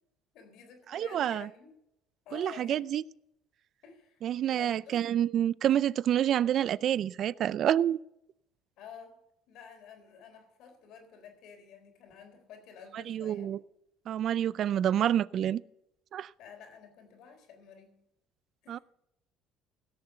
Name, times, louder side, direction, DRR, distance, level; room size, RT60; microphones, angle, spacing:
voice 1, 0.3-1.7 2.3-2.8 3.8-4.2 4.5-5.0 8.8-9.2 9.5-13.5 16.4-18.0 18.6-18.8, left 7 dB, 70° left, 3.8 m, -51 dB
voice 2, 0.9-1.5 2.3-3.0 4.2-8.0 12.9-13.6 14.1-15.6 16.1-16.3 18.7-18.8, right 10 dB, 55° right, 0.4 m, -28 dB
17.0 x 6.9 x 6.7 m
supercardioid pair, 95°, 0 cm